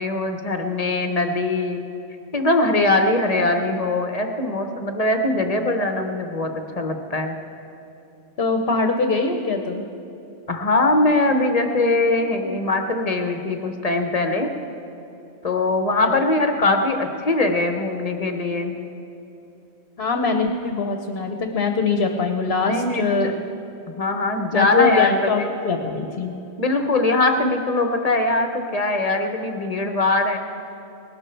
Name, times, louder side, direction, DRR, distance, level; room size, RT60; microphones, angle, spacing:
voice 1, 0.0-1.8 2.3-6.5 6.8-7.4 10.5-14.5 15.4-18.8 22.7-23.3 23.9-25.5 26.6-30.4, left 2 dB, 35° left, 5 dB, 1.0 m, -21 dB
voice 2, 8.4-9.8 16.0-16.2 20.0-23.3 24.5-26.3, left 4 dB, 60° left, 5 dB, 1.0 m, -23 dB
19.0 x 11.5 x 4.5 m, 2.9 s
omnidirectional pair, 1.1 m